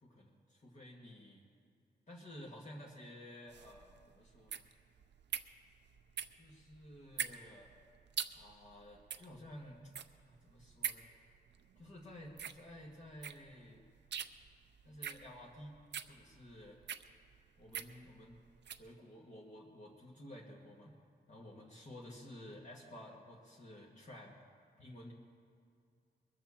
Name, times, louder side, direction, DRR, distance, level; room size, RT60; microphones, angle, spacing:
voice 1, 0.0-1.5 2.1-4.6 6.4-7.7 8.3-9.9 10.3-11.1 11.8-13.8 14.8-15.8 16.1-16.8 17.6-18.4 18.8-20.9 21.3-24.4 24.8-25.1, left 1 dB, 45° left, -3 dB, 1.6 m, -53 dB
sound 1, 3.5-18.9, right 8 dB, 85° right, 0.6 m, -45 dB
22.0 x 7.5 x 7.1 m, 2.3 s
wide cardioid pair, 165°, 18 cm